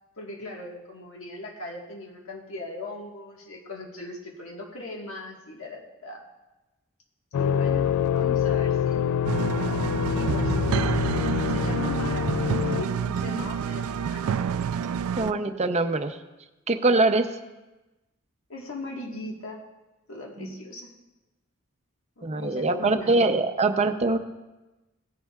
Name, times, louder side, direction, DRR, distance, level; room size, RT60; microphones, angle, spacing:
voice 1, 0.2-6.2 7.4-9.0 10.1-14.3 18.5-19.6 20.1-20.9 22.2-23.2, left 2 dB, 65° left, -1 dB, 1.5 m, -39 dB
sound 1, 7.3-12.8, left 8 dB, 85° left, 0.3 m, -25 dB
sound 2, 9.2-15.3, right 7 dB, 80° right, 0.3 m, -28 dB
voice 2, 15.2-16.2 16.7-17.3 20.4-20.5 22.2-24.2, right 2 dB, 30° right, 7 dB, 0.6 m, -23 dB
17.5 x 10.0 x 2.4 m, 1.1 s
head